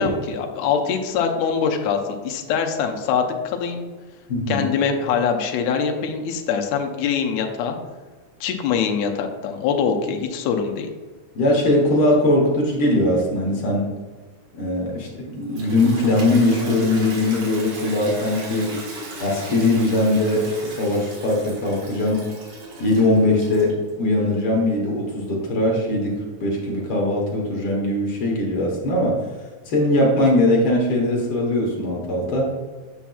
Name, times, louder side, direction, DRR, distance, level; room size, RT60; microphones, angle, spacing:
voice 1, 0.0-3.9 4.5-7.8 8.4-10.9, left 6 dB, 75° left, 3 dB, 1.9 m, -23 dB
voice 2, 4.3-4.7 11.4-13.9 14.6-18.7 19.2-22.2 22.8-26.2 26.4-29.2 29.7-32.5, left 1 dB, 55° left, -2 dB, 1.7 m, -20 dB
Toilet flush, 15.3-23.9, right 1 dB, 85° right, 3.1 m, -35 dB
9.1 x 5.7 x 2.3 m, 1.4 s
omnidirectional pair, 3.4 m